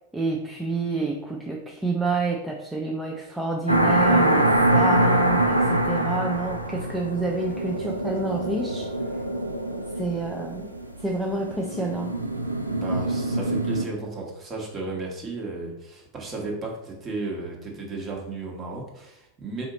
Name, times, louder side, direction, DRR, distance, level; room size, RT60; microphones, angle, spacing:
voice 1, 0.1-8.9 10.0-10.7 11.0-12.1, right 3 dB, 5° right, -1 dB, 0.4 m, -28 dB
sound 1, 3.7-13.8, right 1 dB, 90° right, 0.4 m, -24 dB
voice 2, 12.7-19.7, right 3 dB, 25° right, -1 dB, 1.1 m, -34 dB
3.9 x 2.8 x 3.9 m, 0.85 s
figure-of-eight pair, 90°, 0 cm